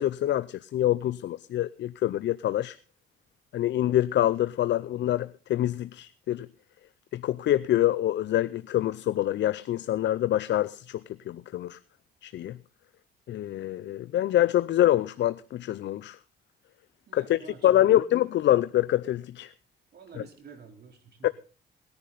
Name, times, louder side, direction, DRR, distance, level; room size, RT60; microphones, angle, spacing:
voice 1, 0.0-2.8 3.5-6.5 7.1-11.0 11.3-11.8 12.2-12.5 13.3-16.2 17.1-19.5 21.2-21.3, left 13 dB, 65° left, 0.5 m, -25 dB
voice 2, 17.1-18.1 19.9-21.3, right 5 dB, 55° right, 4.0 m, -49 dB
18.5 x 10.5 x 4.1 m
cardioid pair, 90°, 20 cm